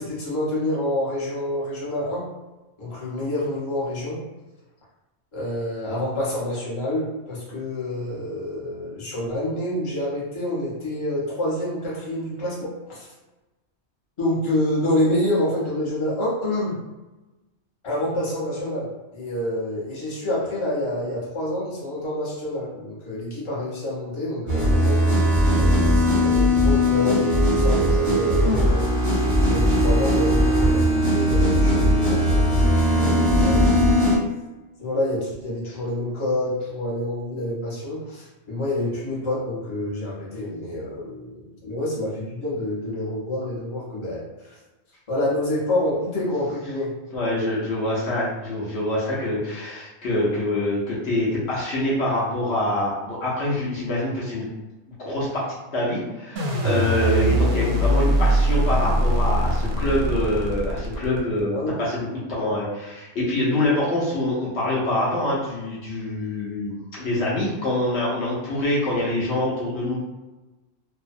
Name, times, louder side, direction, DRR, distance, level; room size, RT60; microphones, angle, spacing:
voice 1, 0.0-2.3 2.8-4.2 5.3-13.1 14.2-16.8 17.8-25.3 25.6-34.0 34.8-44.6 45.1-46.9 61.5-61.7, left 1 dB, 30° left, -7 dB, 0.7 m, -27 dB
sound 1, 24.5-34.2, equal, 20° right, 0.5 m, -19 dB
voice 2, 47.1-54.5 55.0-55.5 55.7-70.0, left 1 dB, 65° left, -7 dB, 0.9 m, -25 dB
sound 2, 56.4-61.4, right 1 dB, 65° right, 0.7 m, -22 dB
2.6 x 2.0 x 2.5 m, 1.1 s
omnidirectional pair, 1.3 m